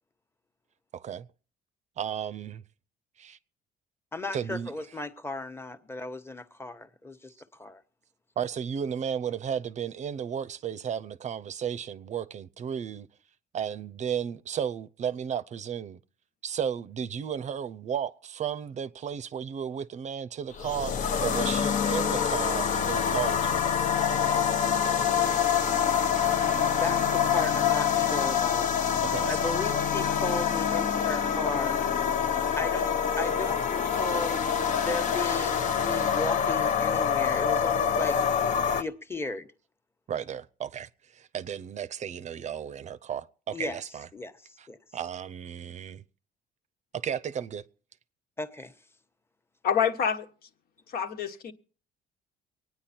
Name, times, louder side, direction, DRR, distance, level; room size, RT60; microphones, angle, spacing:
voice 1, 0.9-1.3 2.0-2.6 3.2-3.4 4.3-4.7 8.4-13.1 13.5-16.0 16.4-23.6 29.0-29.5 40.1-44.1 44.6-44.7 44.9-46.0 46.9-47.7, right 8 dB, 45° right, 0.6 m, -34 dB
voice 2, 4.1-7.8 26.2-28.9 29.3-31.8 32.6-34.4 34.8-38.2 38.6-39.5 43.5-43.8 44.1-44.3 44.7-44.8 48.4-48.7, left 2 dB, 15° left, 1.2 m, -36 dB
sound 1, 20.5-38.8, left 7 dB, 50° left, 0.9 m, -26 dB
voice 3, 49.6-50.3 50.9-51.5, left 7 dB, 65° left, 1.4 m, -27 dB
24.0 x 9.6 x 4.3 m
cardioid pair, 110°, 17 cm